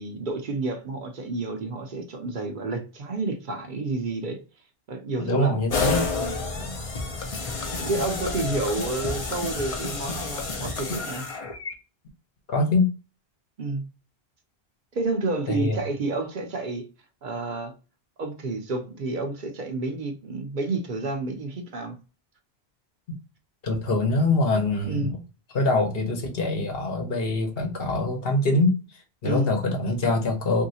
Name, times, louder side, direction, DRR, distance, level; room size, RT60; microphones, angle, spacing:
voice 1, 0.0-4.4 4.9-5.6 6.2-6.4 7.8-11.3 13.6-13.8 14.9-16.9 17.2-17.7 18.2-22.0 24.8-25.1 29.2-29.5, right 3 dB, 55° right, 0.7 m, -30 dB
voice 2, 5.2-6.1 6.6-6.7 12.5-12.9 15.5-15.8 23.6-25.2 25.5-30.6, left 2 dB, 65° left, 1.0 m, -24 dB
sound 1, 5.7-11.7, left 4 dB, 45° left, 0.5 m, -30 dB
3.1 x 2.7 x 2.7 m
omnidirectional pair, 1.1 m